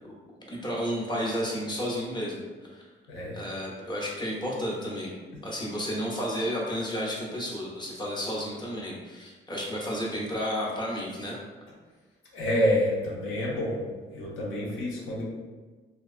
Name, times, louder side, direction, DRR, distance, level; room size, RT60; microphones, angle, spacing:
voice 1, 0.5-2.8 3.3-5.1 5.4-11.4, equal, 20° left, -4 dB, 0.7 m, -32 dB
voice 2, 3.1-3.4 5.3-5.4 12.3-13.8 14.1-15.2, equal, 90° left, -4 dB, 0.7 m, -28 dB
2.6 x 2.2 x 2.4 m, 1.3 s
cardioid pair, 90°, 20 cm